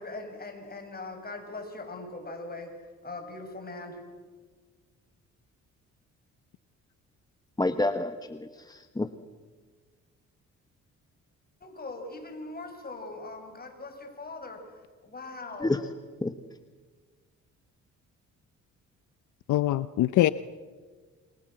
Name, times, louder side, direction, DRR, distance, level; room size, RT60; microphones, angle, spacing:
voice 1, 0.0-2.7 3.0-4.0 11.6-14.6 15.0-15.7, left 2 dB, 30° left, 5 dB, 6.4 m, -40 dB
voice 2, 7.6-9.1 15.6-15.9 16.2-16.3, left 2 dB, 15° left, 9 dB, 1.1 m, -29 dB
voice 3, 19.5-20.3, left 14 dB, 75° left, 15 dB, 0.7 m, -23 dB
28.5 x 24.0 x 7.7 m, 1.5 s
cardioid pair, 90°, 30 cm